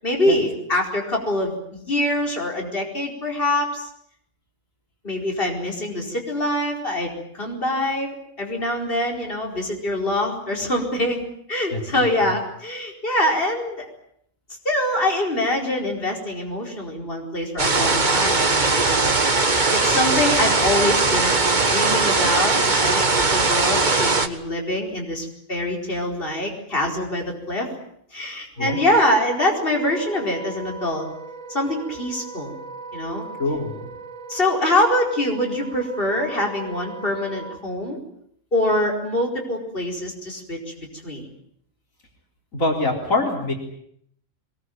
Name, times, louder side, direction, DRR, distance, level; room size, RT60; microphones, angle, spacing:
voice 1, 0.0-3.9 5.0-11.2 11.5-13.9 14.6-19.1 19.7-27.7 28.1-31.0 31.5-32.5 32.9-33.3 34.3-38.0 38.5-41.3, left 1 dB, 45° left, 1 dB, 4.9 m, -24 dB
voice 2, 11.7-12.1 28.6-28.8 33.4-33.9 42.5-43.5, left 2 dB, 85° left, 2 dB, 4.5 m, -24 dB
sound 1, 17.6-24.3, right 3 dB, 35° right, 1.7 m, -19 dB
Wind instrument woodwind instrument, 28.6-37.6, right 3 dB, 85° right, 2.4 m, -38 dB
23.5 x 21.5 x 9.3 m, 0.71 s
omnidirectional pair, 1.4 m